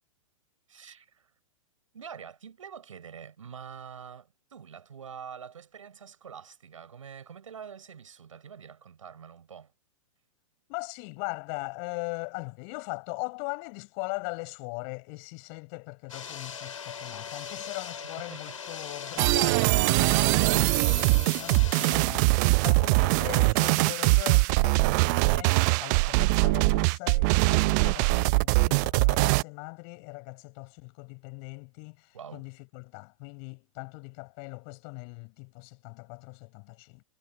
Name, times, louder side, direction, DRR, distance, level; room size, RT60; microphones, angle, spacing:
voice 1, 0.7-1.3 1.9-9.7 18.0-18.6 32.1-32.4, right 7 dB, 65° right, 5.4 m, -45 dB
voice 2, 10.7-37.0, left 40 dB or more, 40° left, 5.1 m, -40 dB
sound 1, 16.1-21.9, left 7 dB, 70° left, 4.3 m, -40 dB
sound 2, 19.2-29.4, right 29 dB, 35° right, 0.5 m, -22 dB
figure-of-eight pair, 110°, 18 cm